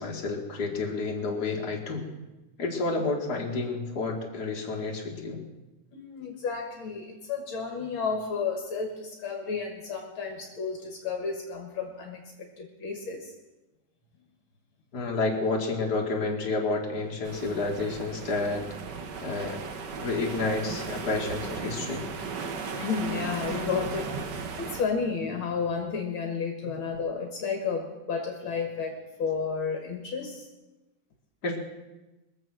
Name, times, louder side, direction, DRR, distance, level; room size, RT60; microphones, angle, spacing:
voice 1, 0.0-2.1 2.6-5.4 14.9-18.6 19.2-19.6 20.0-22.1 31.4-31.6, left 3 dB, 45° left, -1 dB, 2.6 m, -30 dB
voice 2, 5.9-13.3 19.1-19.2 22.7-24.1 24.6-30.5, left 5 dB, 70° left, 2 dB, 2.3 m, -32 dB
sound 1, 17.2-24.8, right 5 dB, 60° right, 1.7 m, -36 dB
22.5 x 7.6 x 6.2 m, 1.1 s
omnidirectional pair, 2.3 m